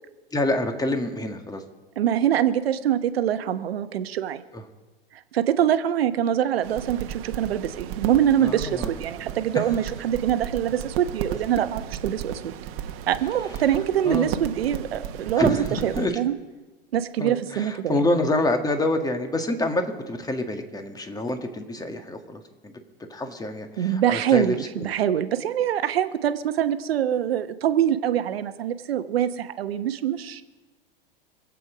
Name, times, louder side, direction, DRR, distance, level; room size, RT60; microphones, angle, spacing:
voice 1, 0.3-1.6 4.5-4.6 8.4-8.9 9.5-9.7 14.0-14.3 15.4-16.1 17.2-22.7 23.1-24.9, left 2 dB, 10° left, 6 dB, 1.8 m, -27 dB
voice 2, 2.0-4.4 5.3-12.5 13.1-15.6 15.8-16.3 16.9-18.0 23.8-30.4, right 10 dB, 75° right, 11 dB, 1.1 m, -24 dB
sound 1, 6.6-16.1, right 9 dB, 45° right, 1.3 m, -35 dB
25.0 x 8.4 x 5.1 m, 1.2 s
hypercardioid pair, 95°, 30 cm